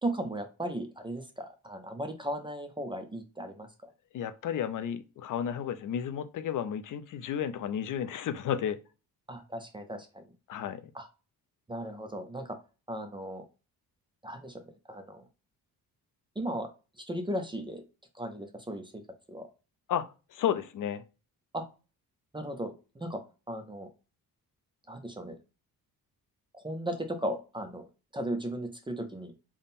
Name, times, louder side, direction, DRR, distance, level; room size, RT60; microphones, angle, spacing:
voice 1, 0.0-3.9 9.3-10.2 10.9-11.1 11.7-12.6 12.9-13.4 14.2-15.3 16.4-16.7 17.1-17.8 18.1-18.9 19.3-19.5 21.5-21.6 22.3-23.2 23.5-23.9 24.9-25.3 26.5-27.8 28.1-29.3, right 1 dB, 15° right, 0.4 m, -36 dB
voice 2, 4.1-8.8 10.5-10.8 19.9-21.0, left 9 dB, 55° left, 0.5 m, -32 dB
3.6 x 2.1 x 4.0 m
cardioid pair, 160°, 37 cm